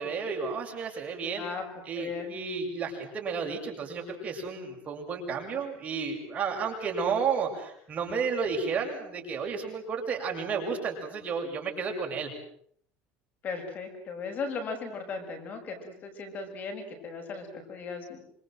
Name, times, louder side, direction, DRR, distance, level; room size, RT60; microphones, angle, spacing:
voice 1, 0.0-1.4 1.9-12.3, right 5 dB, 30° right, 2 dB, 7.3 m, -32 dB
voice 2, 2.0-2.4 13.4-18.2, left 4 dB, 35° left, 5 dB, 6.8 m, -37 dB
27.5 x 27.0 x 7.8 m, 0.65 s
cardioid pair, 150°, 5 cm